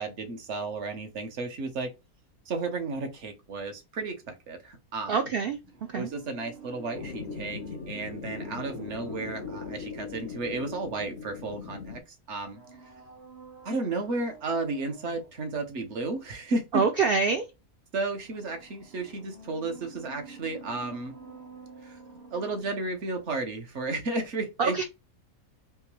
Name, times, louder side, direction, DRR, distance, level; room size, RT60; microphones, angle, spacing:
voice 1, 0.0-1.9 2.5-5.2 5.9-12.0 12.3-12.6 13.6-16.8 17.9-21.1 21.8-22.0 22.3-24.8, right 3 dB, 55° right, 1.2 m, -33 dB
voice 2, 5.1-5.6 5.9-6.1 16.7-17.5 24.6-24.8, right 5 dB, 75° right, 0.5 m, -25 dB
sound 1, 5.6-11.4 12.4-15.4 18.2-23.4 23.7-23.8, right 4 dB, 35° right, 0.7 m, -50 dB
sound 2, 6.9-12.0, left 5 dB, 65° left, 0.6 m, -39 dB
3.6 x 2.8 x 3.0 m
omnidirectional pair, 1.5 m